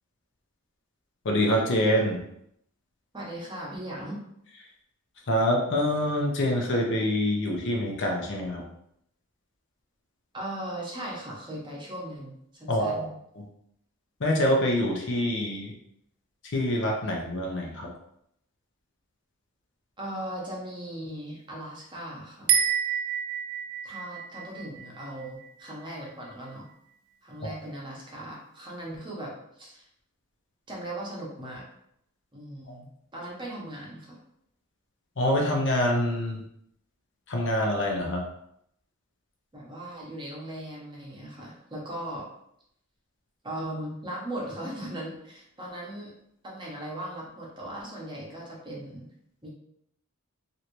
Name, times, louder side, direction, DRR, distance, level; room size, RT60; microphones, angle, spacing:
voice 1, 1.2-2.2 5.3-8.6 12.7-13.1 13.4-13.5 14.2-15.7 16.5-17.9 27.4-27.6 35.2-36.4 37.3-38.2, left 1 dB, 55° left, 0 dB, 0.7 m, -25 dB
voice 2, 3.1-4.2 10.3-13.0 20.0-22.5 23.8-26.6 27.2-29.9 30.7-31.6 32.3-34.2 39.5-42.2 43.4-46.1 46.4-49.1 49.4-49.5, right 1 dB, 20° right, -4 dB, 0.8 m, -38 dB
sound 1, 22.5-25.9, right 8 dB, 65° right, 0.4 m, -29 dB
3.2 x 2.6 x 2.9 m, 0.74 s
head